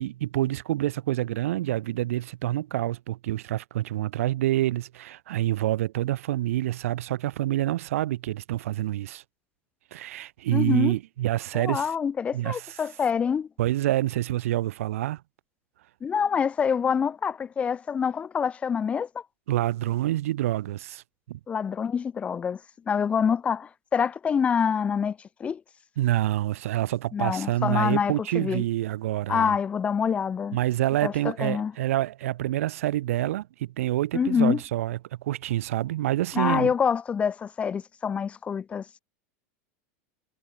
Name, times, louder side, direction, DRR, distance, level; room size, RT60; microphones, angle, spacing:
voice 1, 0.0-9.2 9.9-11.9 12.3-12.7 13.6-15.2 19.5-21.4 26.0-29.6 30.5-36.7, right 14 dB, 90° right, 3.4 m, -27 dB
voice 2, 10.5-10.9 11.5-13.5 16.0-19.2 21.5-22.6 22.9-25.6 27.1-28.6 29.3-30.6 31.0-31.7 34.1-34.6 36.3-38.8, left 7 dB, 15° left, 1.0 m, -26 dB
supercardioid pair, 160°, 7 cm